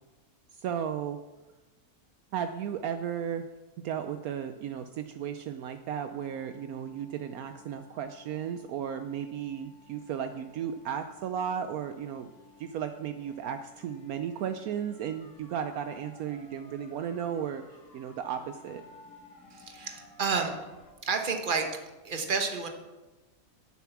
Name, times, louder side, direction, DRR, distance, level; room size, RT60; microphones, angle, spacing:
voice 1, 0.5-1.2 2.3-3.5 3.8-12.3 12.6-18.8, right 8 dB, 75° right, 8 dB, 1.0 m, -35 dB
sound 1, 6.1-20.9, left 4 dB, 55° left, 2.2 m, -55 dB
voice 2, 19.5-20.5 21.0-21.7 22.0-22.7, right 5 dB, 35° right, 4 dB, 1.3 m, -30 dB
10.0 x 7.2 x 6.0 m, 1.1 s
omnidirectional pair, 1.6 m